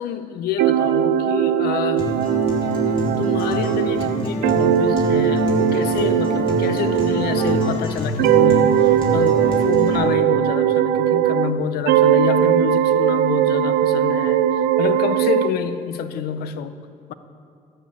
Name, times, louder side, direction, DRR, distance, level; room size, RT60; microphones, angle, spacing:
voice 1, 0.0-2.1 3.2-16.8 17.1-17.2, left 8 dB, 75° left, 12 dB, 0.7 m, -28 dB
sound 1, 0.6-7.8 8.2-11.6 11.9-15.5, right 10 dB, 80° right, 0.5 m, -19 dB
Acoustic guitar, 2.0-10.0, left 2 dB, 35° left, 3.5 m, -26 dB
12.5 x 6.7 x 8.4 m, 2.4 s
supercardioid pair, 65°, 16 cm